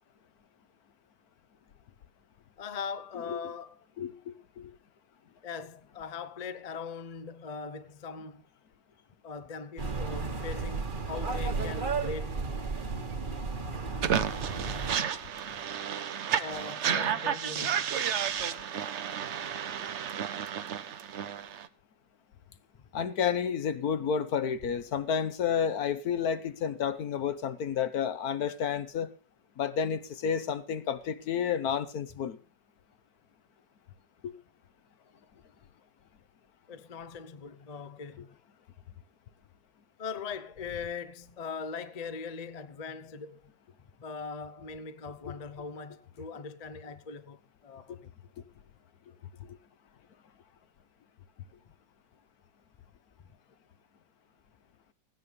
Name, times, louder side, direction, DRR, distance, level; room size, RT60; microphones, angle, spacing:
voice 1, 2.6-3.9 5.4-8.4 9.2-12.4 16.4-18.0 36.7-38.4 40.0-43.4 44.0-48.1, left 5 dB, 45° left, 0.4 m, -40 dB
voice 2, 4.0-4.7 22.9-29.1 29.6-32.4 34.2-34.3 47.9-48.0, left 7 dB, 60° left, 1.3 m, -30 dB
sound 1, 9.8-15.0, right 4 dB, 30° right, 1.3 m, -33 dB
sound 2, 14.0-21.7, right 8 dB, 55° right, 0.8 m, -32 dB
16.5 x 9.8 x 5.2 m
omnidirectional pair, 1.9 m